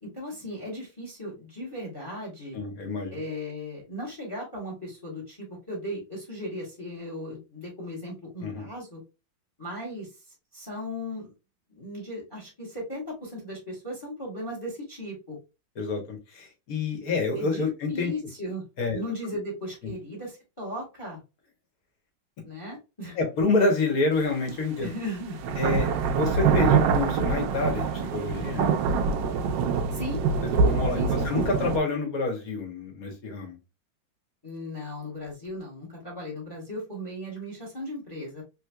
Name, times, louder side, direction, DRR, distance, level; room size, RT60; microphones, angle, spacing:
voice 1, 0.0-2.6 3.1-9.0 9.6-10.1 10.5-11.3 11.7-15.4 17.4-17.6 17.9-18.6 18.9-21.2 22.4-23.2 24.8-25.4 29.9-30.2 30.9-31.6 34.4-38.4, left 1 dB, 15° left, -2 dB, 1.2 m, -37 dB
voice 2, 2.5-3.2 8.4-8.7 15.8-18.1 18.8-19.0 19.8-19.9 23.2-24.9 25.6-28.8 30.6-33.6, left 3 dB, 50° left, 2 dB, 1.5 m, -28 dB
sound 1, 24.5-24.6 25.3-31.8, right 5 dB, 75° right, 1.2 m, -24 dB
3.6 x 3.1 x 2.2 m, 0.27 s
omnidirectional pair, 2.1 m